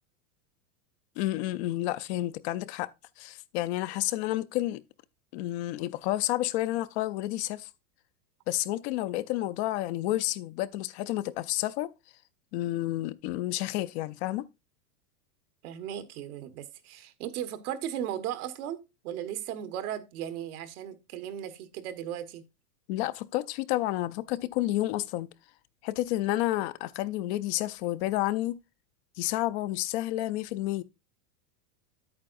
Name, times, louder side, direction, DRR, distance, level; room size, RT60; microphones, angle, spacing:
voice 1, 1.2-2.9 3.2-4.8 5.3-7.7 8.5-11.9 12.5-14.5 22.9-25.3 25.8-28.6 29.2-30.8, left 16 dB, 50° left, 0.5 m, -30 dB
voice 2, 15.6-22.4, right 10 dB, 70° right, 1.4 m, -36 dB
9.7 x 8.7 x 2.5 m
supercardioid pair, 130°, 46 cm